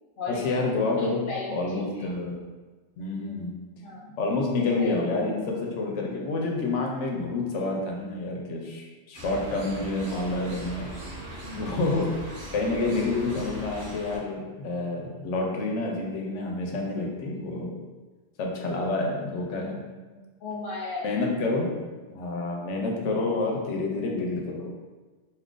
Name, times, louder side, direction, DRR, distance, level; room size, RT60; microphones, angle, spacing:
voice 1, 0.3-2.4 3.0-3.5 4.2-10.9 11.6-12.2 12.5-17.8 18.4-19.8 21.0-21.8 22.1-24.7, left 3 dB, 75° left, 0 dB, 0.9 m, -28 dB
voice 2, 0.9-2.1 3.8-4.2 4.8-4.9 11.4-11.8 20.1-21.1, left 3 dB, 50° left, -5 dB, 0.9 m, -36 dB
sound 1, 9.1-14.2, right 1 dB, 75° right, 1.2 m, -40 dB
2.7 x 2.4 x 3.7 m, 1.3 s
omnidirectional pair, 1.2 m